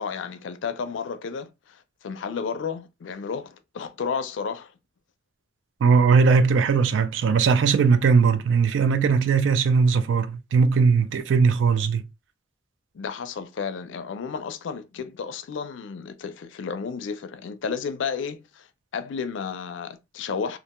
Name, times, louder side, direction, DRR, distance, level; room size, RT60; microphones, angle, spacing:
voice 1, 0.0-4.7 12.9-18.7 18.9-20.6, left 6 dB, 75° left, 0.4 m, -32 dB
voice 2, 5.8-12.1, right 5 dB, 70° right, 0.3 m, -19 dB
2.5 x 2.2 x 2.9 m
head